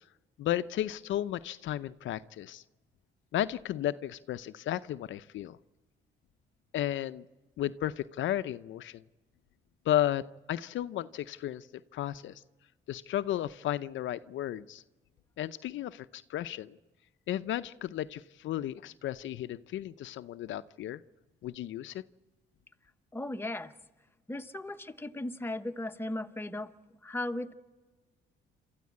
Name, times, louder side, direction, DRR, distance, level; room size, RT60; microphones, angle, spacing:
voice 1, 0.4-2.6 3.3-5.6 6.7-7.3 7.6-9.0 9.9-11.7 11.9-12.4 12.9-14.8 15.4-16.8 17.3-21.0 21.4-22.0, left 12 dB, 75° left, 13 dB, 0.6 m, -34 dB
voice 2, 23.1-23.7 24.3-26.7 27.0-27.5, left 1 dB, 10° left, 8 dB, 1.1 m, -36 dB
28.0 x 13.5 x 8.5 m, 1.3 s
cardioid pair, 90°, 20 cm